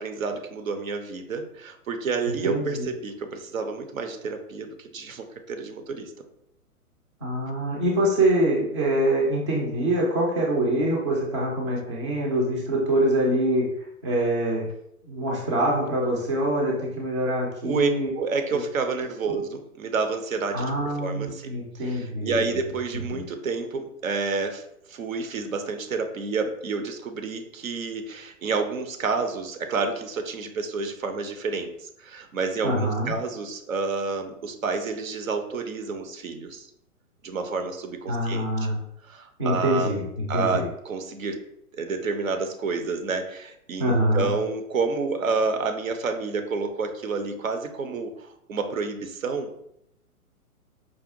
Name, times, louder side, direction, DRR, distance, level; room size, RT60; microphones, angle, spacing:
voice 1, 0.0-6.1 17.6-20.7 21.0-21.5 21.8-36.7 37.2-38.7 39.0-40.0 40.3-41.4 41.7-49.5, right 4 dB, 65° right, 6 dB, 0.6 m, -29 dB
voice 2, 2.3-2.9 7.2-13.6 14.0-14.6 15.1-18.1 19.2-19.4 20.5-22.5 22.9-23.2 32.6-33.1 38.1-38.8 39.4-40.7 43.8-44.3, right 1 dB, 20° right, -2 dB, 0.4 m, -25 dB
4.8 x 2.2 x 2.5 m, 0.74 s
figure-of-eight pair, 120°, 44 cm